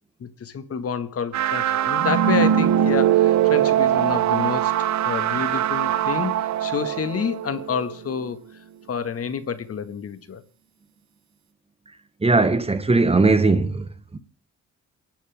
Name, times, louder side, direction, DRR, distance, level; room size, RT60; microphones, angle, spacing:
voice 1, 0.2-8.4 8.9-10.4, left 6 dB, 50° left, 1.9 m, -29 dB
sound 1, 1.3-8.2, right 11 dB, 65° right, 1.0 m, -21 dB
voice 2, 12.2-14.2, right 3 dB, 20° right, 1.3 m, -19 dB
28.5 x 11.5 x 3.6 m
cardioid pair, 90°, 30 cm